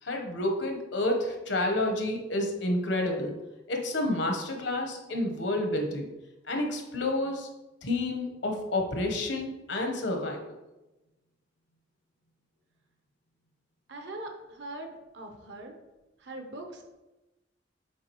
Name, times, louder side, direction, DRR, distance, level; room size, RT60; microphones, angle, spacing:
voice 1, 0.0-3.4 3.7-6.0 6.5-7.5 7.8-10.6, left 1 dB, 75° left, 3 dB, 1.1 m, -29 dB
voice 2, 13.9-15.8 16.2-16.9, right 1 dB, 65° right, 4 dB, 0.9 m, -41 dB
7.3 x 4.7 x 3.1 m, 1.0 s
head